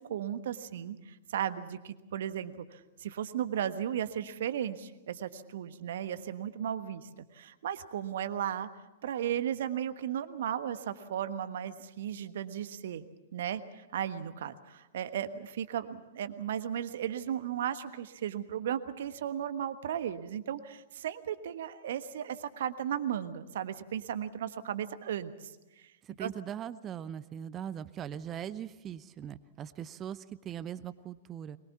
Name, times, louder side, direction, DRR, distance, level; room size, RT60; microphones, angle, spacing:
voice 1, 0.0-8.7 9.0-13.1 13.3-25.3 25.8-25.9 26.2-26.3, right 9 dB, 60° right, 11 dB, 1.3 m, -35 dB
voice 2, 26.0-31.6, right 9 dB, 25° right, 15 dB, 0.7 m, -40 dB
23.5 x 21.5 x 7.2 m, 1.0 s
figure-of-eight pair, 105°, 0 cm